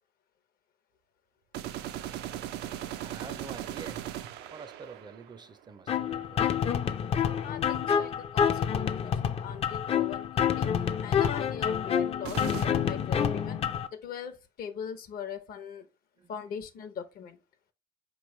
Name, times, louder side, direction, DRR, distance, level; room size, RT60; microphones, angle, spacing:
sound 1, 1.5-5.6 12.2-12.7, right 11 dB, 85° right, 0.5 m, -38 dB
voice 1, 3.0-4.0 4.5-6.9 16.2-16.3, right 4 dB, 25° right, 0.4 m, -47 dB
sound 2, 5.9-13.9, left 8 dB, 35° left, 0.4 m, -28 dB
voice 2, 7.4-10.7 11.0-13.6 13.9-15.9 16.3-17.4, left 7 dB, 60° left, 0.8 m, -41 dB
4.8 x 3.1 x 3.1 m
cardioid pair, 110°, 17 cm